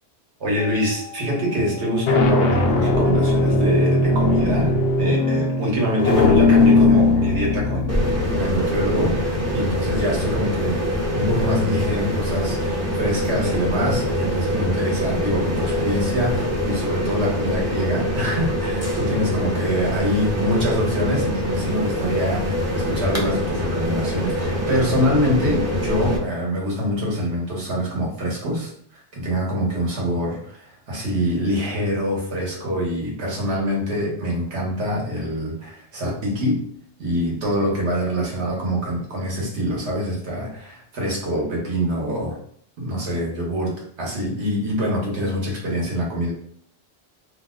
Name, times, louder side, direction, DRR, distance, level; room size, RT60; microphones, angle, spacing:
voice 1, 0.4-7.9 8.3-10.8 11.1-36.7 37.0-42.4 42.8-46.3, equal, 75° right, -2 dB, 1.3 m, -25 dB
sound 1, 0.6-1.0 1.8-10.4, left 3 dB, 65° left, 0.8 m, -20 dB
sound 2, 7.9-26.2, equal, 20° right, 0.5 m, -24 dB
2.8 x 2.1 x 3.5 m, 0.62 s
omnidirectional pair, 1.2 m